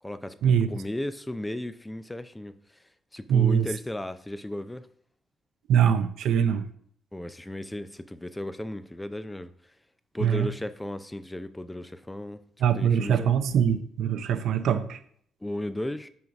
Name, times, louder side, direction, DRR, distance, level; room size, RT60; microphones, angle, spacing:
voice 1, 0.0-2.8 3.1-4.9 7.1-9.7 10.1-12.4 12.8-13.3 15.4-16.1, left 1 dB, 10° left, 12 dB, 0.4 m, -35 dB
voice 2, 3.3-3.7 5.7-6.6 10.2-10.5 12.6-15.0, right 8 dB, 75° right, 10 dB, 0.6 m, -23 dB
5.7 x 3.8 x 5.3 m, 0.62 s
cardioid pair, 90°, 0 cm